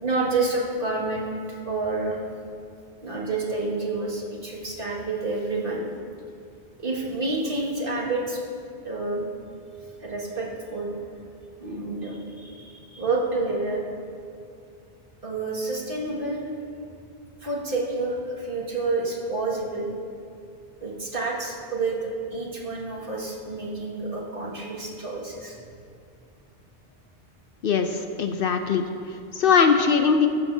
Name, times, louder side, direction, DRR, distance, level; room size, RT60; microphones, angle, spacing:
voice 1, 0.0-1.3 1.6-2.2 3.0-5.8 6.8-8.4 8.8-9.2 10.0-11.0 11.6-13.8 15.2-16.4 17.4-19.9 20.8-22.0 22.3-25.6, right 3 dB, 50° right, -4 dB, 2.1 m, -29 dB
voice 2, 27.6-30.3, left 6 dB, 60° left, 6 dB, 0.7 m, -21 dB
14.0 x 13.0 x 2.7 m, 2.4 s
omnidirectional pair, 1.1 m